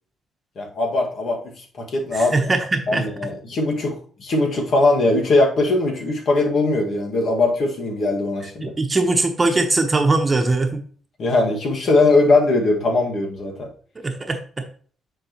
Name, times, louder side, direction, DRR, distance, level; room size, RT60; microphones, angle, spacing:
voice 1, 0.6-1.4 1.8-2.5 2.9-8.7 11.2-13.7, left 2 dB, 60° left, 1 dB, 2.0 m, -20 dB
voice 2, 2.1-3.1 8.6-10.8 13.9-14.6, right 3 dB, 25° right, 5 dB, 1.2 m, -21 dB
9.8 x 4.9 x 3.1 m, 0.43 s
cardioid pair, 90°, 0 cm